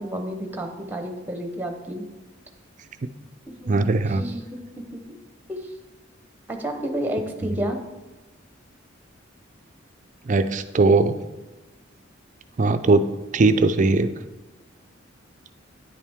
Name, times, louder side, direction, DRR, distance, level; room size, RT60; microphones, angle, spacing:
voice 1, 0.0-2.0 3.5-4.5 4.9-5.0 5.5-5.8 6.5-7.8, equal, 10° right, 5 dB, 0.9 m, -31 dB
voice 2, 3.7-4.2 10.3-11.1 12.6-13.0 13.3-14.1, right 3 dB, 40° right, 10 dB, 0.4 m, -19 dB
9.9 x 8.4 x 3.6 m, 1.1 s
head